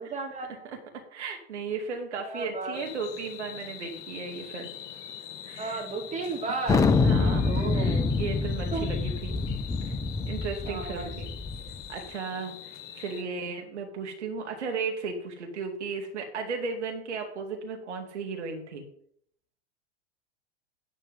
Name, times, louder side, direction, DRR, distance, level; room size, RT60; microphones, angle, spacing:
voice 1, 0.0-0.6 2.2-2.8 5.6-8.0 8.7-8.9 10.6-11.1 13.1-13.3, right 4 dB, 20° right, 0 dB, 2.6 m, -34 dB
voice 2, 0.6-4.7 5.4-5.8 7.0-9.4 9.8-10.0 10.3-11.3 11.9-18.8, right 5 dB, 70° right, 3 dB, 2.5 m, -35 dB
sound 1, 2.7-13.2, left 10 dB, 50° left, 1.5 m, -43 dB
Thunder, 6.7-11.8, left 4 dB, 10° left, 0.5 m, -26 dB
11.0 x 4.5 x 7.5 m, 0.64 s
figure-of-eight pair, 90°, 36 cm